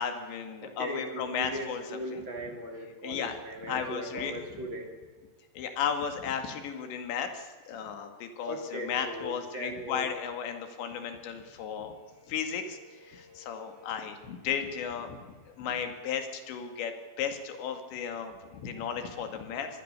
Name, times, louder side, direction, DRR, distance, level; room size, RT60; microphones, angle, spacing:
voice 1, 0.0-2.2 3.0-3.4 3.7-4.4 5.6-11.9 12.3-12.8 13.1-15.2 15.6-19.7, left 7 dB, 65° left, 7 dB, 4.0 m, -35 dB
voice 2, 0.6-4.9 8.5-10.1 12.1-12.6 13.0-14.0, equal, 30° right, 3 dB, 2.5 m, -39 dB
25.5 x 20.0 x 6.8 m, 1.4 s
omnidirectional pair, 5.9 m